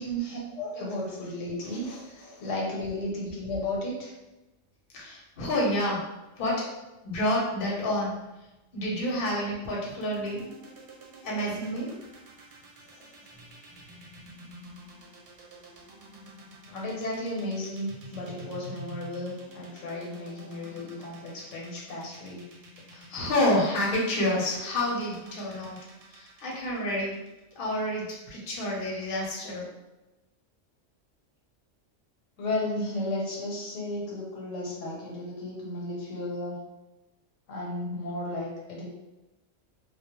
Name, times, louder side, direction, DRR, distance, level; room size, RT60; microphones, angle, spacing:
voice 1, 0.0-4.1 16.7-22.4 32.4-36.6 37.5-38.9, left 1 dB, 75° left, -3 dB, 1.0 m, -34 dB
voice 2, 1.6-2.4 4.9-6.0 6.4-6.7 7.0-8.2 8.7-10.4 11.2-12.0 22.9-25.8 26.1-27.2 27.5-29.6, left 1 dB, 50° left, -4 dB, 0.7 m, -29 dB
sound 1, 9.9-28.0, equal, 70° right, 0.8 m, -48 dB
2.2 x 2.0 x 2.9 m, 1.0 s
omnidirectional pair, 1.3 m